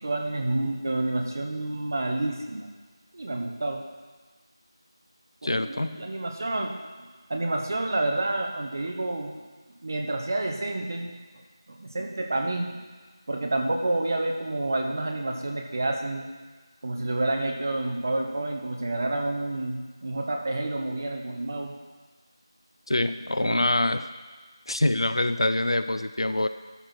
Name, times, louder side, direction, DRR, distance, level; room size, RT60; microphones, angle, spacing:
voice 1, 0.0-2.7 3.1-3.8 5.4-9.3 9.8-11.1 11.7-12.8 13.3-16.3 16.8-21.8 23.4-23.7, right 2 dB, 40° right, 3 dB, 1.0 m, -29 dB
voice 2, 5.4-6.0 22.9-24.0 24.7-26.5, left 1 dB, 75° left, 11 dB, 0.5 m, -25 dB
12.5 x 4.5 x 6.0 m, 1.4 s
figure-of-eight pair, 175°, 3 cm